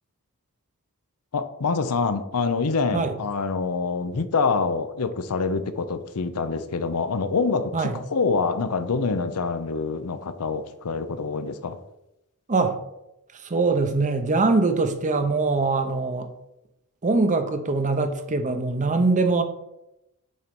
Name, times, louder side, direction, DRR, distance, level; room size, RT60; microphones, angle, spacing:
voice 1, 1.3-11.8, left 4 dB, 85° left, 0.6 m, -26 dB
voice 2, 13.4-16.3 17.0-19.4, right 3 dB, 35° right, 0.7 m, -22 dB
6.5 x 4.4 x 5.3 m
head